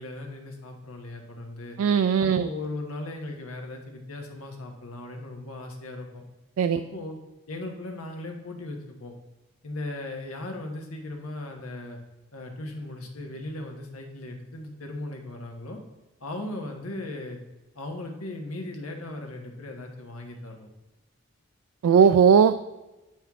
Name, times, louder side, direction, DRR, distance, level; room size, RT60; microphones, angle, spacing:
voice 1, 0.0-1.8 2.2-6.2 6.8-7.2 7.5-9.1 9.6-12.0 12.3-15.8 16.2-17.4 17.7-20.7, left 2 dB, 80° left, 3 dB, 1.2 m, -37 dB
voice 2, 1.8-2.5 6.6-6.8 21.8-22.5, right 7 dB, 80° right, 11 dB, 0.3 m, -18 dB
8.8 x 4.5 x 3.6 m, 1.0 s
head